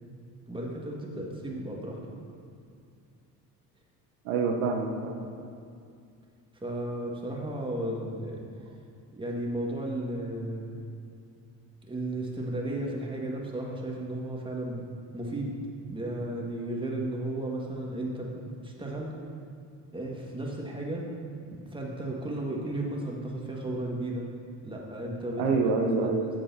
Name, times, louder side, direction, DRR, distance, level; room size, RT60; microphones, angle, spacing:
voice 1, 0.5-2.2 6.6-8.4 9.1-10.8 11.9-14.8 15.1-15.5 15.9-19.1 19.9-21.1 21.5-24.3 24.6-26.4, right 1 dB, 10° right, -2 dB, 2.0 m, -34 dB
voice 2, 4.2-5.5 25.4-26.3, right 4 dB, 65° right, 1 dB, 1.0 m, -27 dB
14.5 x 7.5 x 2.9 m, 2.4 s
figure-of-eight pair, 55°, 49 cm